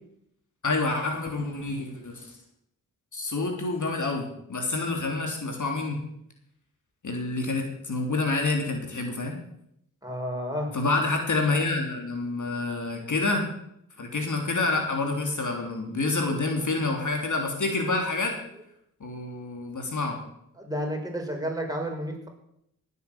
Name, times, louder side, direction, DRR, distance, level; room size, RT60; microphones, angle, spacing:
voice 1, 0.6-2.3 3.1-6.0 7.0-9.4 10.7-13.5 14.0-18.3 19.0-20.2, left 3 dB, 55° left, 2 dB, 3.2 m, -28 dB
voice 2, 10.0-10.7 20.6-22.3, equal, 10° right, 1 dB, 5.4 m, -31 dB
17.5 x 8.3 x 7.4 m, 0.76 s
cardioid pair, 45°, 36 cm